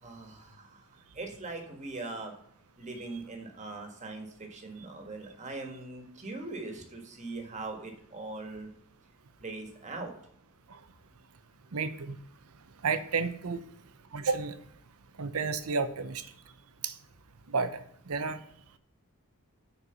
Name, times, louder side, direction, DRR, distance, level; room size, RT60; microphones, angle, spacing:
voice 1, 0.0-2.3 2.8-8.7 9.4-10.1, right 3 dB, 35° right, 3 dB, 1.6 m, -41 dB
voice 2, 11.7-12.2 12.8-13.7 14.1-14.5 15.2-16.3 16.8-16.9 17.5-18.4, right 4 dB, 85° right, 11 dB, 0.8 m, -31 dB
6.8 x 4.5 x 6.8 m, 0.69 s
head